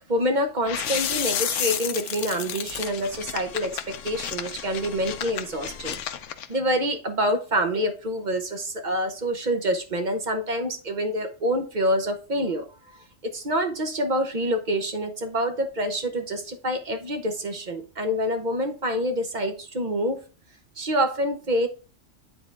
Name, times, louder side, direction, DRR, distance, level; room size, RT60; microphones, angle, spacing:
voice 1, 0.0-6.0 6.5-12.7 13.2-20.2 20.8-21.7, equal, 40° right, 1.1 m, -26 dB
sound 1, 0.6-6.5, left 9 dB, 70° left, 1.0 m, -31 dB
9.2 x 4.0 x 3.4 m
omnidirectional pair, 1.3 m